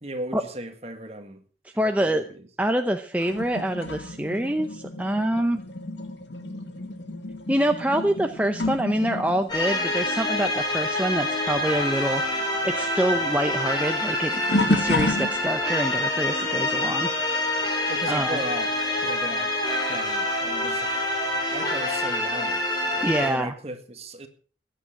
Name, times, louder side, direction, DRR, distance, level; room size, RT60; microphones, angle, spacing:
voice 1, 0.0-1.4 1.8-2.2 17.9-18.7 19.0-19.5 19.8-20.9 21.3-24.3, right 1 dB, 35° right, 1.9 m, -36 dB
voice 2, 1.8-2.2 2.6-5.6 7.5-12.2 12.6-17.1 18.1-18.4 23.0-23.5, right 1 dB, 10° right, 0.7 m, -26 dB
sound 1, 3.2-11.2 11.5-15.8 16.4-16.7 19.0-19.1 20.0-20.1, left 2 dB, 85° left, 2.1 m, -31 dB
sound 2, 9.5-23.3, left 1 dB, 25° left, 4.0 m, -26 dB
15.5 x 10.0 x 6.1 m
head